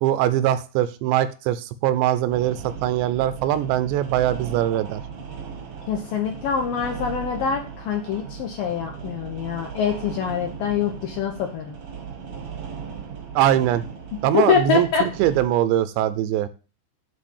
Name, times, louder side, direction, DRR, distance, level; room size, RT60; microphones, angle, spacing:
voice 1, 0.0-5.0 13.4-13.9 14.2-16.5, right 12 dB, 80° right, 12 dB, 2.7 m, -22 dB
sound 1, 2.3-15.5, right 6 dB, 65° right, 1.4 m, -37 dB
voice 2, 5.9-11.7 14.3-15.1, left 7 dB, 75° left, 3 dB, 2.1 m, -24 dB
10.0 x 4.0 x 7.1 m, 0.33 s
omnidirectional pair, 5.2 m